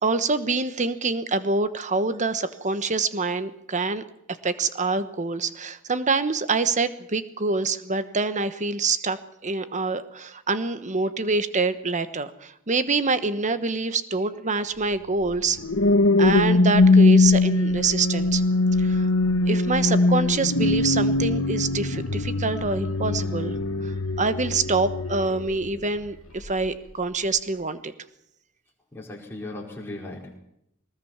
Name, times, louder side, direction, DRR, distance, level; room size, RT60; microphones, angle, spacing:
voice 1, 0.0-4.0 4.4-9.2 9.4-15.6 16.2-18.4 18.8-19.1 19.5-23.5 23.8-27.9, right 3 dB, 35° right, 12 dB, 1.2 m, -26 dB
sound 1, 15.3-25.8 26.4-26.7, left 2 dB, 70° left, 1.1 m, -21 dB
voice 2, 28.9-30.4, left 2 dB, 10° left, -3 dB, 4.9 m, -37 dB
22.0 x 19.5 x 7.3 m, 0.78 s
head